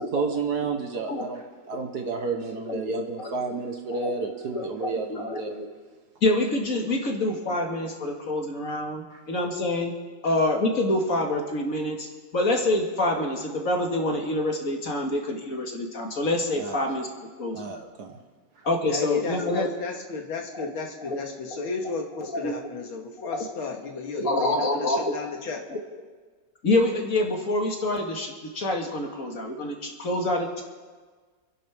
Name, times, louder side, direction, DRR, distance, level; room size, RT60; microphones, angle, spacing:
voice 1, 0.0-5.5 9.1-9.2 16.6-16.8 17.5-18.2, right 4 dB, 55° right, 4 dB, 1.6 m, -31 dB
voice 2, 2.5-3.4 4.0-5.7 6.2-9.9 10.2-17.1 17.4-17.6 18.6-19.7 21.1-21.2 22.3-22.5 23.2-23.5 24.2-25.1 25.7-25.8 26.6-30.6, left 1 dB, 40° left, 1 dB, 2.1 m, -27 dB
voice 3, 18.9-25.6, left 5 dB, 75° left, 2 dB, 2.4 m, -33 dB
28.0 x 10.5 x 3.6 m, 1.4 s
omnidirectional pair, 2.3 m